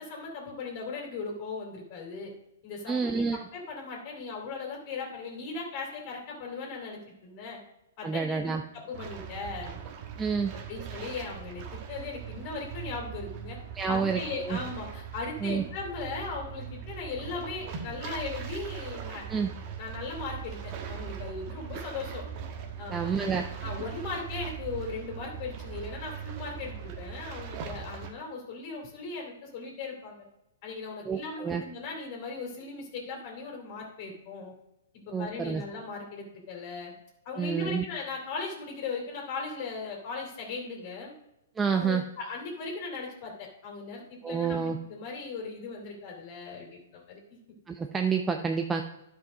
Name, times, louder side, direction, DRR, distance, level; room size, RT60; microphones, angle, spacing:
voice 1, 0.0-2.3 2.6-7.6 8.0-9.8 10.7-13.6 13.9-19.2 19.8-22.2 22.8-23.3 23.6-30.2 30.6-34.5 34.9-36.9 37.2-41.1 41.7-47.4, left 4 dB, 45° left, 0 dB, 2.6 m, -38 dB
voice 2, 2.9-3.4 8.0-8.6 10.2-10.5 13.8-14.6 15.4-15.6 19.3-19.5 22.9-23.5 31.0-31.6 35.1-35.6 37.4-37.8 41.6-42.0 44.2-44.8 47.7-48.8, right 5 dB, 15° right, 4 dB, 0.6 m, -28 dB
sound 1, 8.9-28.1, right 8 dB, 40° right, 1.3 m, -40 dB
10.5 x 5.2 x 5.0 m, 0.91 s
hypercardioid pair, 125°, 0 cm